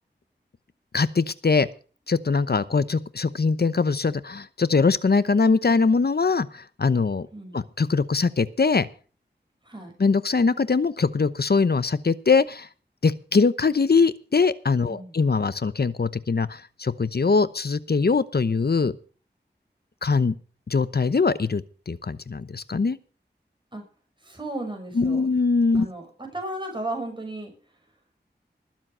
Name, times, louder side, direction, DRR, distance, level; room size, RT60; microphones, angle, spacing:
voice 1, 0.9-1.7 2.1-7.3 7.5-8.9 10.0-12.7 13.0-18.9 20.0-20.3 20.7-23.0 25.0-25.9, left 4 dB, 60° left, 15 dB, 0.9 m, -22 dB
voice 2, 7.3-7.6 9.6-9.9 14.9-15.1 23.7-23.8 24.2-25.3 25.7-27.5, right 2 dB, 25° right, 3 dB, 6.3 m, -34 dB
20.5 x 7.6 x 5.6 m, 0.39 s
wide cardioid pair, 55°, 18 cm